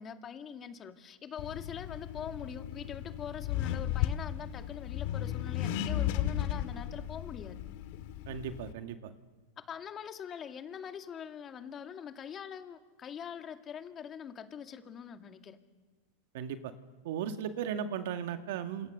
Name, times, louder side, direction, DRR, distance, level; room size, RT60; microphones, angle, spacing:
voice 1, 0.0-7.6 9.7-15.6, left 7 dB, 30° left, 7 dB, 2.1 m, -43 dB
Accelerating revving vroom, 1.4-8.7, left 11 dB, 60° left, 1.7 m, -35 dB
voice 2, 8.3-9.1 16.3-16.7 17.0-18.9, right 8 dB, 70° right, 8 dB, 2.0 m, -36 dB
28.5 x 27.0 x 6.7 m, 1.3 s
hypercardioid pair, 120°, 0 cm